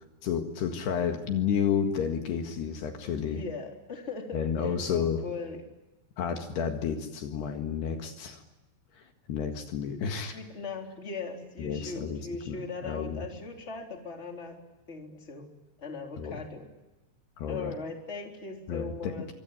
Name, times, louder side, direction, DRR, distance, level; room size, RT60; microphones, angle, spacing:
voice 1, 0.2-3.4 4.3-5.2 6.2-8.4 9.0-9.1 9.3-10.4 11.6-12.2 12.5-13.3 16.2-16.4 17.4-17.7 18.7-19.1, left 7 dB, 70° left, 5 dB, 3.7 m, -31 dB
voice 2, 3.0-5.6 10.3-14.6 14.9-15.5 15.8-16.7 17.5-19.3, left 4 dB, 15° left, 2 dB, 3.4 m, -39 dB
25.0 x 24.5 x 9.6 m, 1.0 s
omnidirectional pair, 5.2 m